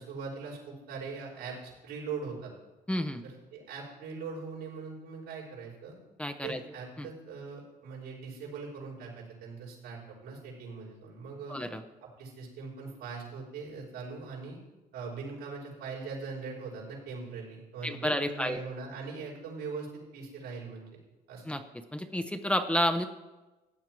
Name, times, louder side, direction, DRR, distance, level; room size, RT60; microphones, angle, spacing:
voice 1, 0.0-2.5 3.2-5.9 6.4-11.6 12.0-14.6 14.9-21.0 21.3-21.4, right 4 dB, 90° right, -4 dB, 5.2 m, -41 dB
voice 2, 2.9-3.2 6.2-6.6 7.0-7.1 11.5-11.8 17.8-18.6 21.5-21.6 21.9-23.1, equal, 5° left, 8 dB, 0.8 m, -30 dB
14.5 x 9.0 x 4.6 m, 1.1 s
cardioid pair, 110°, 17 cm